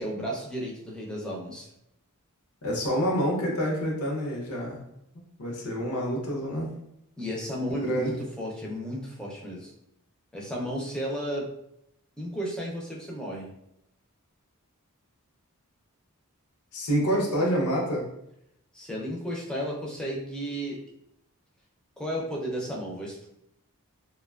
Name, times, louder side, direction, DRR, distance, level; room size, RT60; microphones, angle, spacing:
voice 1, 0.0-1.7 7.2-9.7 10.3-11.5 12.2-13.5 18.7-20.8 22.0-23.3, equal, 5° left, -3 dB, 0.4 m, -33 dB
voice 2, 2.6-4.8 5.4-6.7 7.8-8.2 16.7-18.1, equal, 80° left, -2 dB, 0.6 m, -27 dB
2.6 x 2.2 x 2.3 m, 0.79 s
head